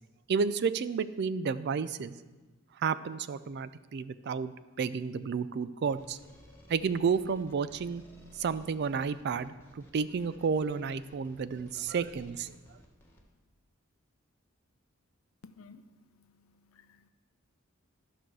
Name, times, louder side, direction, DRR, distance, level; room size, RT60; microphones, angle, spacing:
voice 1, 0.3-2.1 2.8-6.2 6.7-8.0 8.4-12.5, right 5 dB, 50° right, 15 dB, 0.3 m, -31 dB
sound 1, 5.8-13.2, equal, 10° left, 1.3 m, -57 dB
voice 2, 15.4-17.1, left 4 dB, 80° left, 11 dB, 0.6 m, -56 dB
11.5 x 6.1 x 4.7 m, 1.2 s
head